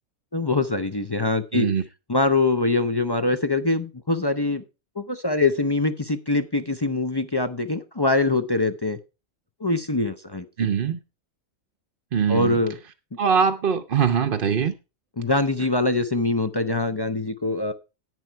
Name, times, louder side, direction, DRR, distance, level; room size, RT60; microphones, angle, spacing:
voice 1, 0.3-1.7 2.1-4.6 5.0-9.0 9.6-10.7 12.3-12.8 15.2-17.7, left 2 dB, 30° left, 0.4 m, -23 dB
voice 2, 1.5-1.8 10.6-11.0 12.1-12.6 13.2-14.7, right 7 dB, 50° right, 0.8 m, -22 dB
10.5 x 8.9 x 4.5 m
omnidirectional pair, 1.5 m